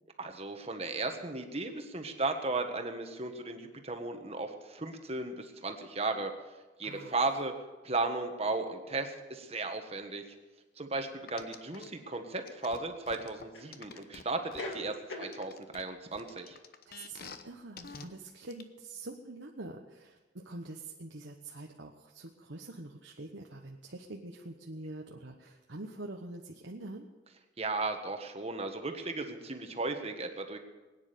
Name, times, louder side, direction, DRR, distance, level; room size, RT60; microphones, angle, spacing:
voice 1, 0.2-6.3 6.8-7.5 7.8-10.2 10.8-16.6 27.6-30.6, right 3 dB, 35° right, 5 dB, 1.5 m, -35 dB
voice 2, 6.8-7.3 16.8-27.1, right 2 dB, 75° right, 1 dB, 1.2 m, -45 dB
sound 1, 10.0-10.1 11.7-12.6 13.5-14.1 14.4-15.4, left 2 dB, 75° left, 2.3 m, -42 dB
sound 2, 11.3-11.9 12.5-14.9 15.3-17.4 17.8-18.1 18.5-18.6, left 5 dB, 50° left, 1.0 m, -48 dB
21.0 x 9.9 x 6.9 m, 1.2 s
head